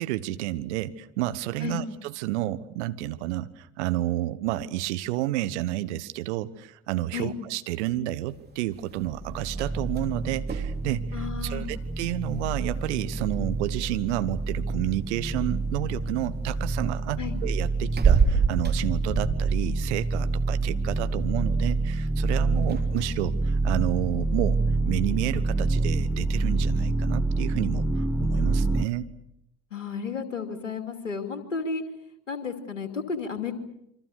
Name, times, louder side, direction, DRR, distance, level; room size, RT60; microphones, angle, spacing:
voice 1, 0.0-24.6 24.9-29.1, right 15 dB, 65° right, 13 dB, 1.4 m, -30 dB
sound 1, 8.1-24.8, right 6 dB, 25° right, 3.4 m, -32 dB
low tone final, 9.1-28.8, right 2 dB, 5° left, 1.1 m, -27 dB
voice 2, 11.1-11.7 17.2-17.3 22.5-22.7 29.7-31.8 32.3-33.5, left 5 dB, 85° left, 6 dB, 2.7 m, -32 dB
27.5 x 25.0 x 6.6 m, 0.80 s
figure-of-eight pair, 65°, 37 cm